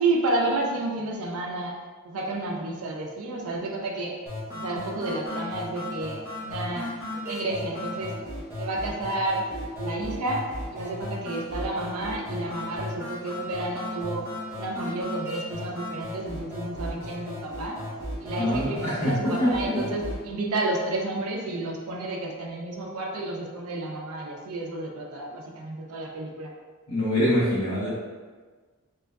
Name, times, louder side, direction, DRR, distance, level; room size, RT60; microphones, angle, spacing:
voice 1, 0.0-1.8 2.0-4.1 4.5-6.9 7.3-8.2 8.6-9.4 9.8-14.3 14.5-17.8 18.2-26.5, right 2 dB, 85° right, 0 dB, 0.4 m, -31 dB
sound 1, 4.3-20.3, left 1 dB, 10° right, 0.8 m, -36 dB
voice 2, 18.4-19.8 26.9-27.9, left 1 dB, 85° left, -7 dB, 1.1 m, -24 dB
3.5 x 3.0 x 2.3 m, 1.5 s
head